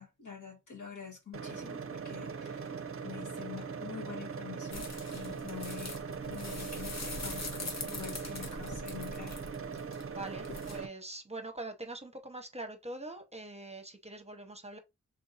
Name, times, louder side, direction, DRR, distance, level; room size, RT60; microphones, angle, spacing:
voice 1, 0.0-6.0 6.3-9.4, left 8 dB, 90° left, 1.7 m, -46 dB
sound 1, 1.3-10.9, right 5 dB, 50° right, 0.5 m, -40 dB
sound 2, 4.7-10.8, left 3 dB, 65° left, 1.1 m, -43 dB
voice 2, 9.8-14.8, right 2 dB, 20° right, 0.9 m, -43 dB
3.5 x 2.6 x 4.0 m
wide cardioid pair, 80°, 29 cm